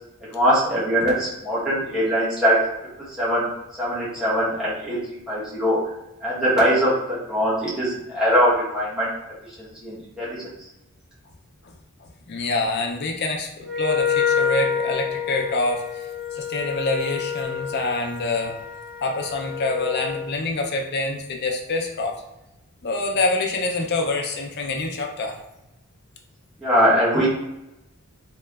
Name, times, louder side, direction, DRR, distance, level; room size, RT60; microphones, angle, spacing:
voice 1, 0.3-2.6 3.2-3.5 3.8-5.0 5.3-5.8 6.2-9.1 9.6-10.5 26.6-27.3, equal, 5° right, -10 dB, 1.0 m, -21 dB
voice 2, 12.0-18.6 19.0-22.1 22.8-25.4, left 2 dB, 50° left, 1 dB, 0.4 m, -26 dB
Wind instrument woodwind instrument, 13.6-20.3, left 7 dB, 90° left, 0.8 m, -27 dB
3.1 x 2.8 x 2.3 m, 0.92 s
head